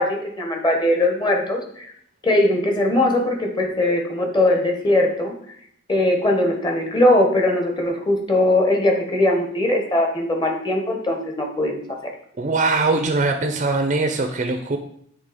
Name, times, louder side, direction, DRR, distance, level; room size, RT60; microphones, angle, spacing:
voice 1, 0.0-1.9 2.2-5.3 5.9-11.8, left 1 dB, 25° left, 2 dB, 1.1 m, -20 dB
voice 2, 12.4-14.8, right 3 dB, 40° right, 5 dB, 0.5 m, -21 dB
7.5 x 3.3 x 5.0 m, 0.65 s
head